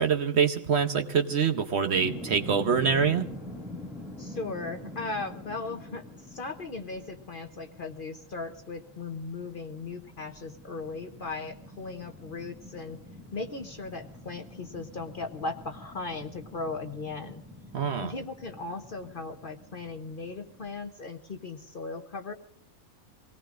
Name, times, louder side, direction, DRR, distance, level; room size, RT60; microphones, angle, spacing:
voice 1, 0.0-3.2 17.7-18.1, right 6 dB, 55° right, 6 dB, 1.0 m, -25 dB
sound 1, 1.9-20.9, left 1 dB, ahead, 2.1 m, -45 dB
voice 2, 4.2-13.0 13.3-17.4 18.0-22.3, left 3 dB, 45° left, 6 dB, 0.9 m, -37 dB
26.0 x 18.5 x 2.5 m, 0.74 s
omnidirectional pair, 1.5 m